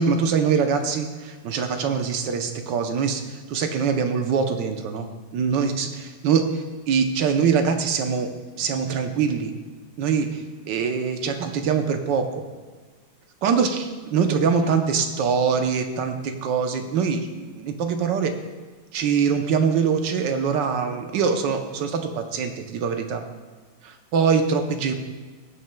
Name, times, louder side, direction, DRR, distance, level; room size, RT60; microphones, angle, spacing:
voice 1, 0.0-5.1 5.3-8.3 8.6-9.5 10.0-10.4 10.7-12.4 13.4-18.3 18.9-23.2 23.8-24.9, right 6 dB, 70° right, 6 dB, 1.4 m, -23 dB
15.0 x 9.1 x 2.2 m, 1.4 s
omnidirectional pair, 2.1 m